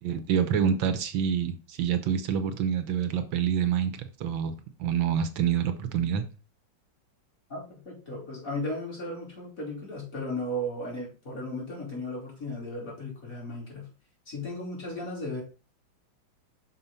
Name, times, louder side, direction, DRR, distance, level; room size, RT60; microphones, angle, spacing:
voice 1, 0.0-4.5 4.8-6.2, right 8 dB, 75° right, 9 dB, 1.5 m, -27 dB
voice 2, 7.5-13.9 14.3-15.4, left 1 dB, 40° left, -4 dB, 3.6 m, -35 dB
6.3 x 4.2 x 5.5 m, 0.34 s
omnidirectional pair, 2.2 m